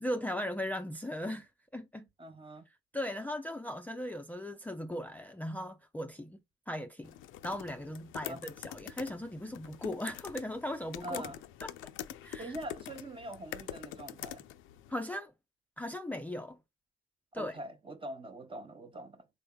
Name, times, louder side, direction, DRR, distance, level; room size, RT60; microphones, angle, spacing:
voice 1, 0.0-2.1 2.9-6.4 6.7-7.1 7.4-11.2 11.6-11.9 12.2-12.5 14.9-15.3 15.8-16.6 17.3-17.5, left 1 dB, 10° left, 0.4 m, -38 dB
voice 2, 2.2-2.7 8.2-8.4 11.0-11.4 12.4-14.4 17.4-19.3, right 1 dB, 25° right, 0.7 m, -43 dB
sound 1, 7.0-14.9, left 12 dB, 80° left, 0.4 m, -45 dB
3.8 x 3.3 x 2.2 m
cardioid pair, 90°, 20 cm